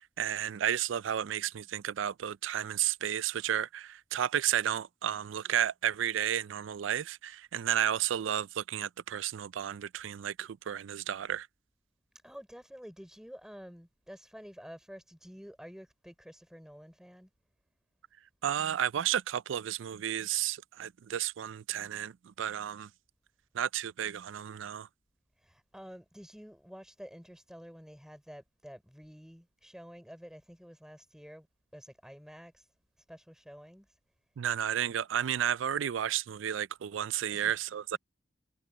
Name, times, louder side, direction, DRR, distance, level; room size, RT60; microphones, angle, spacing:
voice 1, 0.0-11.5 18.4-22.9 23.5-24.9 34.4-38.0, right 10 dB, 90° right, 0.4 m, -32 dB
voice 2, 12.2-17.3 25.4-31.5 31.7-32.6 33.1-33.9 37.3-37.5, equal, 5° right, 3.4 m, -50 dB
head